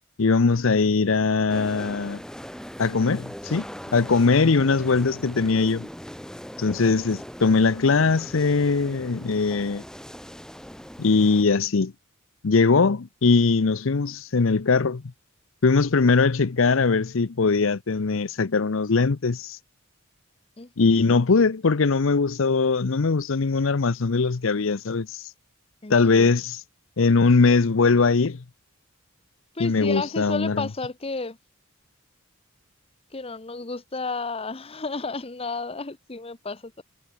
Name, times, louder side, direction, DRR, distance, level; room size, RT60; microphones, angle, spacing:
voice 1, 0.2-2.2 2.8-3.6 3.9-5.9 6.6-9.8 11.0-11.9 12.4-15.0 15.6-19.6 20.8-25.3 25.9-26.6 27.0-28.4 29.6-30.6, left 4 dB, 65° left, 0.7 m, -21 dB
sound 1, 1.5-11.4, equal, 5° left, 1.8 m, -40 dB
voice 2, 20.6-20.9 25.8-26.3 29.5-31.4 33.1-36.8, left 3 dB, 25° left, 1.0 m, -32 dB
head